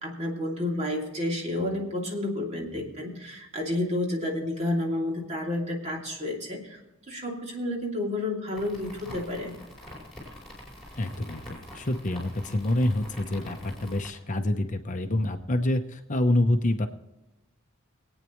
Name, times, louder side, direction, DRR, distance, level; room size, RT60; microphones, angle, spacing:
voice 1, 0.0-6.8 7.1-9.5, left 1 dB, 35° right, -1 dB, 2.8 m, -30 dB
sound 1, 8.5-14.1, left 1 dB, ahead, 5.2 m, -44 dB
voice 2, 11.0-16.9, left 1 dB, 40° left, 6 dB, 0.8 m, -27 dB
22.5 x 9.0 x 3.1 m, 0.99 s
head